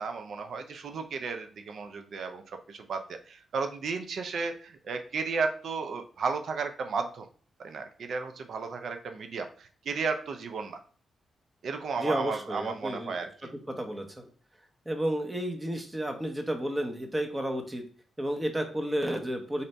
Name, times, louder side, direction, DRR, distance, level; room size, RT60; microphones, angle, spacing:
voice 1, 0.0-7.3 7.6-10.8 11.6-13.5, right 4 dB, 65° right, 7 dB, 0.5 m, -34 dB
voice 2, 12.0-13.1 13.7-14.2 14.9-17.8 18.2-19.6, right 1 dB, 15° right, 5 dB, 0.9 m, -31 dB
4.1 x 2.6 x 3.3 m, 0.42 s
cardioid pair, 75°, 0 cm